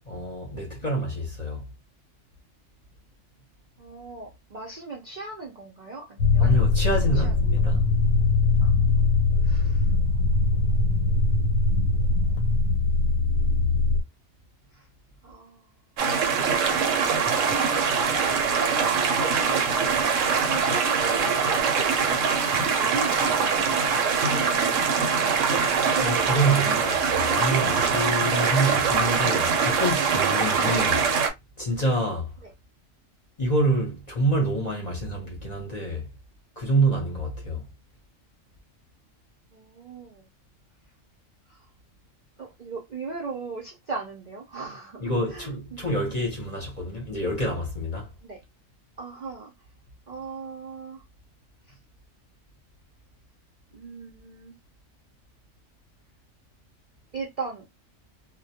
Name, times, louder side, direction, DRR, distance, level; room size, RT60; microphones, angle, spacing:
voice 1, 0.1-1.6 6.4-7.8 26.0-31.1 31.6-32.3 33.4-36.1 36.6-37.6 45.0-48.1, right 1 dB, 40° left, 0.7 m, -27 dB
voice 2, 3.8-6.6 7.0-7.3 8.6-9.1 9.4-9.9 10.6-11.0 14.7-14.9 15.2-15.7 19.1-19.7 20.1-21.4 21.7-23.7 24.0-26.6 32.4-32.5 39.5-40.3 41.5-41.6 42.4-46.1 48.2-48.4 49.0-49.5 50.1-51.0 53.7-54.5 57.1-57.6, right 4 dB, 55° right, 0.5 m, -38 dB
sound 1, 6.2-14.0, left 3 dB, 90° left, 1.0 m, -21 dB
sound 2, 16.0-31.3, right 6 dB, 75° right, 0.9 m, -23 dB
2.2 x 2.1 x 2.7 m
omnidirectional pair, 1.4 m